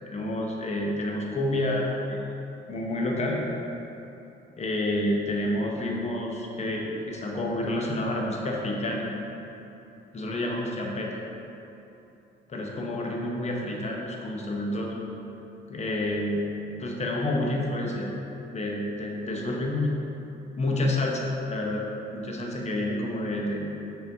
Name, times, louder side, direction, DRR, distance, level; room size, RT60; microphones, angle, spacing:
voice 1, 0.1-2.2 2.7-3.4 4.6-9.1 10.1-11.2 12.5-14.9 15.7-16.4 16.8-18.1 18.5-19.9 20.5-21.9 22.1-23.7, left 1 dB, 35° left, -1 dB, 0.6 m, -29 dB
5.5 x 2.5 x 2.7 m, 2.9 s
cardioid pair, 90°, 20 cm